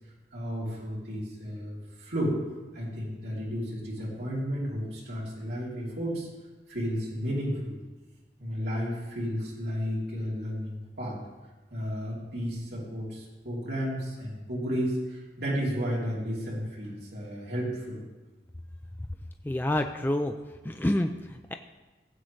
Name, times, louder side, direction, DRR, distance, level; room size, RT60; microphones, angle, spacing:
voice 1, 0.3-2.4 2.7-6.3 6.7-7.8 8.4-11.2 11.7-18.0, equal, 70° right, -5 dB, 3.0 m, -32 dB
voice 2, 19.4-20.3 20.6-21.5, left 1 dB, 10° left, 6 dB, 0.3 m, -28 dB
16.5 x 7.8 x 3.2 m, 1.2 s
head